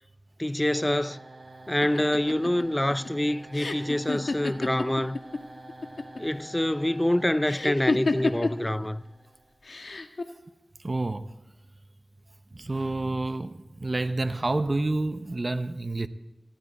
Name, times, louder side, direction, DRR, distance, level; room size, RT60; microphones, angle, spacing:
voice 1, 0.4-1.3 1.7-5.2 6.2-9.0, left 1 dB, 15° left, 0.4 m, -26 dB
sound 1, 0.7-9.6, right 2 dB, 65° right, 6.5 m, -48 dB
sound 2, 1.8-5.4 5.7-6.4 7.5-8.7 9.7-10.2, left 3 dB, 70° left, 1.1 m, -29 dB
voice 2, 10.8-11.3 12.5-16.1, right 2 dB, 40° right, 0.7 m, -29 dB
19.5 x 14.5 x 4.1 m
wide cardioid pair, 80°, 0 cm